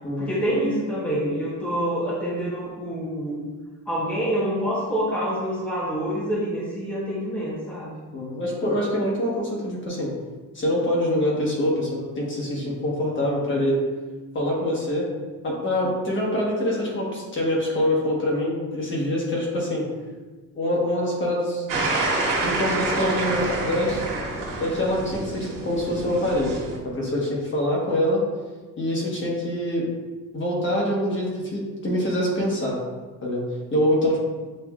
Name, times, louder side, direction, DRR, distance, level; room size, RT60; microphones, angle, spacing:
voice 1, 0.2-3.4 3.9-7.9 14.5-14.7, equal, 5° left, -7 dB, 0.6 m, -26 dB
voice 2, 8.1-10.1 10.5-13.9 14.3-15.1 15.4-19.9 20.5-21.7 22.4-24.0 24.6-28.2 28.8-29.9 30.3-32.8 33.2-34.2, left 1 dB, 35° left, -3 dB, 1.1 m, -25 dB
sound 1, 21.7-26.8, right 2 dB, 80° right, 1.2 m, -27 dB
7.4 x 2.5 x 2.3 m, 1.3 s
cardioid pair, 165°, 32 cm